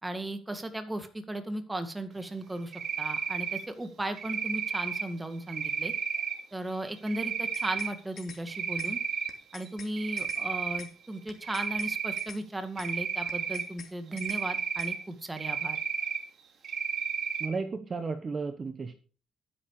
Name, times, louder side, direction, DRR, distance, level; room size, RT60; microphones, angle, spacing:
voice 1, 0.0-5.9 6.5-9.0 9.5-15.8, right 1 dB, 15° right, 8 dB, 2.2 m, -36 dB
Cricket, 2.7-3.6 4.2-5.0 5.5-6.3 7.1-7.9 8.3-9.3 9.7-10.8 11.4-12.2 12.8-13.6 14.1-15.0 15.4-16.2 16.6-17.5, right 7 dB, 65° right, 2.9 m, -32 dB
sound 1, 7.3-7.9 8.2-8.4 8.8-8.9 9.3-9.9 10.2-10.4 10.8-10.9 11.3-11.9 12.2-12.4 12.8-12.9 13.3-13.9 14.2-14.4 14.8-14.9, left 7 dB, 60° left, 2.8 m, -47 dB
voice 2, 17.4-18.9, right 4 dB, 40° right, 10 dB, 1.3 m, -33 dB
12.0 x 10.0 x 5.0 m, 0.39 s
cardioid pair, 90°, 0 cm